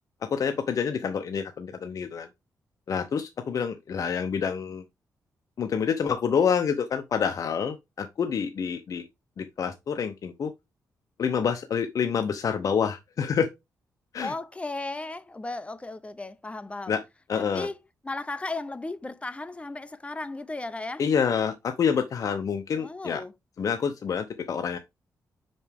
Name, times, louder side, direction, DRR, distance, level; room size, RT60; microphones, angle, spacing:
voice 1, 0.2-2.3 2.9-4.8 5.6-9.0 9.4-10.5 11.2-13.5 14.1-14.3 16.9-17.0 17.3-17.7 21.0-23.2 23.6-24.8, left 7 dB, 60° left, 0.7 m, -27 dB
voice 2, 14.2-16.9 17.4-17.7 18.0-21.0 22.8-23.3, left 2 dB, 20° left, 0.7 m, -35 dB
5.9 x 5.2 x 3.5 m
cardioid pair, 90°, 7 cm